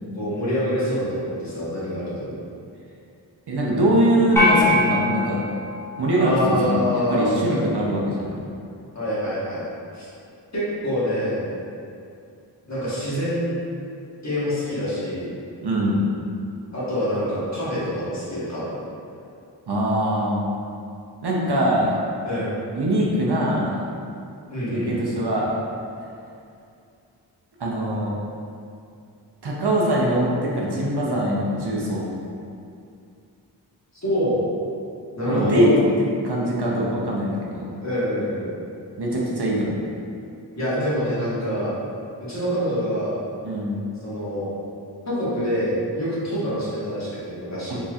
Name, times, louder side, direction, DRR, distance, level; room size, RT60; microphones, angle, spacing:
voice 1, 0.1-1.1 1.4-2.4 6.2-7.8 8.9-9.6 9.9-10.1 10.5-11.4 12.7-13.5 14.2-15.3 16.7-18.7 22.2-22.6 24.5-25.0 34.0-34.4 35.1-35.7 37.8-38.5 40.6-41.7 42.2-43.2 44.0-44.5 45.1-47.8, equal, 40° left, -10 dB, 1.3 m, -25 dB
voice 2, 3.5-5.4 6.0-8.4 15.6-16.0 19.7-20.4 21.2-22.0 22.7-23.8 24.7-25.6 27.6-28.1 29.4-32.1 35.3-35.7 36.2-37.7 39.0-39.8 43.4-43.8 47.7-47.8, right 1 dB, 65° right, -4 dB, 0.7 m, -22 dB
sound 1, 4.4-6.8, left 2 dB, 5° left, 0.9 m, -23 dB
4.1 x 3.0 x 2.4 m, 2.5 s
wide cardioid pair, 65°, 43 cm